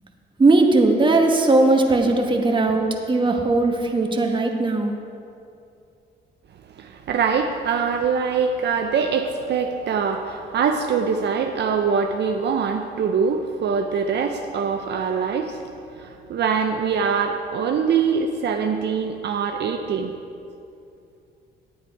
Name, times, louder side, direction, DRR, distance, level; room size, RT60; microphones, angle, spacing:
voice 1, 0.4-4.9, right 2 dB, 25° right, 2 dB, 1.2 m, -18 dB
voice 2, 6.7-15.6 15.9-20.1, right 6 dB, 60° right, 4 dB, 0.6 m, -23 dB
9.6 x 8.8 x 4.6 m, 2.6 s
cardioid pair, 90°, 20 cm